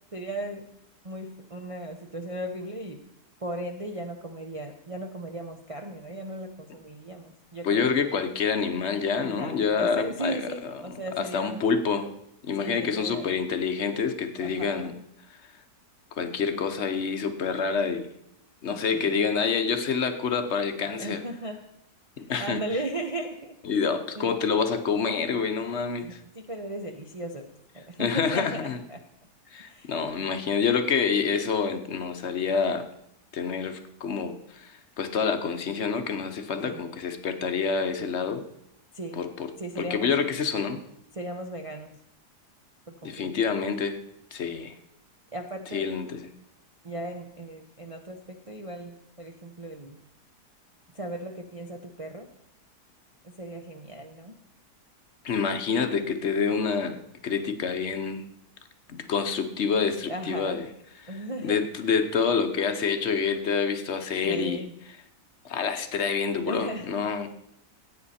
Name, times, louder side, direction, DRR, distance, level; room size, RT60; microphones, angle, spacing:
voice 1, 0.1-0.6 1.0-3.0 3.4-7.9 9.2-11.6 12.6-13.3 14.4-14.9 18.7-19.2 20.8-21.6 22.2-23.6 24.2-24.4 25.3-25.4 26.0-27.4 27.7-29.0 29.6-29.9 36.6-36.8 38.9-39.2 39.6-40.1 41.1-42.0 42.9-43.3 45.3-45.9 46.8-50.0 50.9-52.3 53.2-54.4 60.1-60.6 61.1-61.6 64.2-64.7 66.5-66.9, right 1 dB, 35° right, 3 dB, 0.5 m, -36 dB
voice 2, 7.6-12.1 12.4-14.9 15.3-15.5 16.1-18.1 18.6-21.2 22.2-22.6 23.6-26.2 28.0-28.8 29.5-32.9 33.3-38.4 39.2-39.5 39.8-40.8 43.0-44.0 44.3-44.8 45.7-46.3 55.2-57.0 57.2-58.3 58.9-60.7 61.0-61.1 61.4-64.6 65.4-67.3, left 5 dB, 50° left, 8 dB, 1.0 m, -27 dB
15.0 x 8.8 x 4.2 m, 0.76 s
omnidirectional pair, 1.7 m